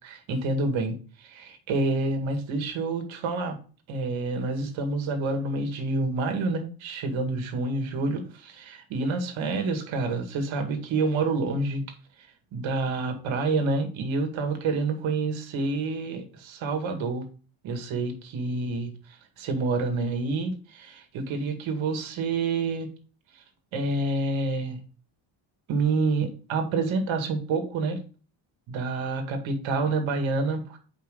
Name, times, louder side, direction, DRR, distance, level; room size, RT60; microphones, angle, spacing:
voice 1, 0.0-3.6 3.9-11.8 12.5-17.2 17.6-18.9 19.4-22.9 23.7-24.8 25.7-28.0 28.7-30.8, right 3 dB, 80° right, 6 dB, 2.1 m, -28 dB
9.2 x 5.3 x 3.8 m, 0.36 s
cardioid pair, 140°, 46 cm